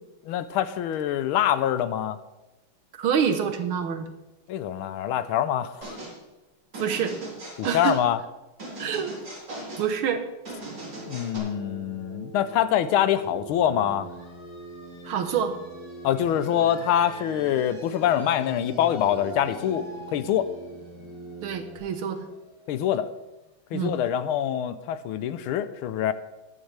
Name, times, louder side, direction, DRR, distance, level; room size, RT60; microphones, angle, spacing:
voice 1, 0.2-2.2 4.5-6.0 7.6-8.2 11.1-14.1 16.0-20.5 22.7-23.1 23.7-26.1, left 10 dB, 85° left, 13 dB, 1.5 m, -25 dB
voice 2, 3.0-4.1 6.8-7.1 7.6-8.0 8.8-9.1 9.8-10.3 15.0-15.5 21.4-22.3 23.7-24.0, right 7 dB, 80° right, 8 dB, 1.9 m, -26 dB
sound 1, 5.8-6.2 6.7-8.0 8.6-9.9 10.4-11.4, right 2 dB, 55° right, 4.1 m, -38 dB
sound 2, 10.5-21.8, right 2 dB, 5° right, 4.2 m, -43 dB
sound 3, 14.0-23.4, equal, 15° left, 1.8 m, -46 dB
14.5 x 11.0 x 3.4 m, 1.0 s
omnidirectional pair, 2.3 m